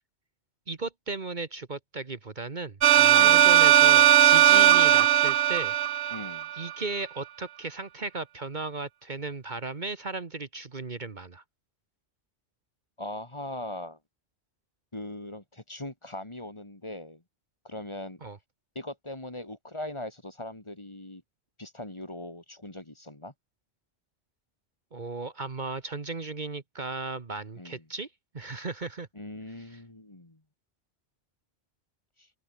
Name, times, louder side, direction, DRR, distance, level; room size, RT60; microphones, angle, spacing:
voice 1, 0.7-5.7 6.6-11.4 18.2-18.4 24.9-28.1 28.3-29.1, right 3 dB, 45° right, 1.4 m, -36 dB
sound 1, 2.8-6.7, right 13 dB, 80° right, 0.8 m, -18 dB
voice 2, 6.1-6.5 13.0-14.0 14.9-17.2 17.6-18.2 18.8-21.2 21.6-23.3 27.6-27.8 29.1-30.4 32.2-32.3, left 1 dB, 25° left, 2.3 m, -40 dB
omnidirectional pair, 1.1 m